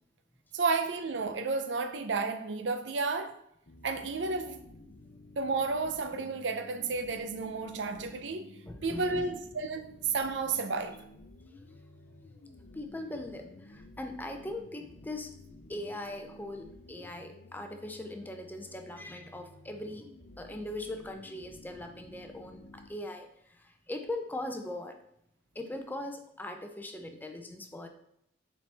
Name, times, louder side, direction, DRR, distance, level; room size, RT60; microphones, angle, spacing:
voice 1, 0.5-3.4 3.8-4.6 5.4-8.5 8.8-11.0, right 4 dB, 85° right, 0.6 m, -32 dB
sound 1, 3.7-22.9, left 2 dB, 75° left, 0.7 m, -53 dB
voice 2, 8.7-9.3 12.7-15.3 15.7-20.1 20.4-25.0 25.5-27.9, left 1 dB, 10° left, 0.6 m, -40 dB
6.9 x 4.3 x 3.4 m
head